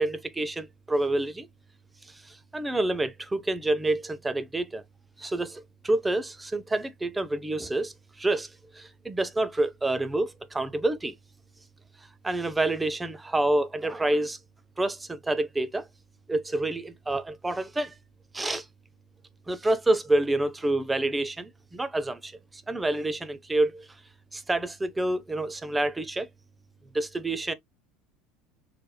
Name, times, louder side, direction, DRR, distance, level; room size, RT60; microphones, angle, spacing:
voice 1, 0.0-1.5 2.1-4.8 5.2-8.5 8.7-11.1 12.2-14.4 14.8-15.9 16.3-18.0 18.3-18.7 19.5-23.9 24.3-26.3 26.9-27.5, right 2 dB, 15° right, 0.8 m, -28 dB
6.5 x 3.4 x 2.2 m
hypercardioid pair, 85°, 0 cm